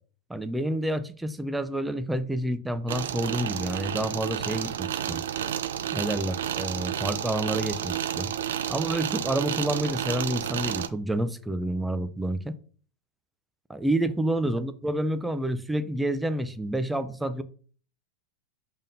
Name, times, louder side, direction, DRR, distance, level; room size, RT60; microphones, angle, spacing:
voice 1, 0.3-5.2 5.9-8.3 8.7-12.6 13.7-17.4, right 1 dB, 5° right, 0.6 m, -29 dB
sound 1, 2.9-10.9, right 10 dB, 75° right, 0.5 m, -31 dB
5.4 x 3.6 x 5.4 m
hypercardioid pair, 100°, 0 cm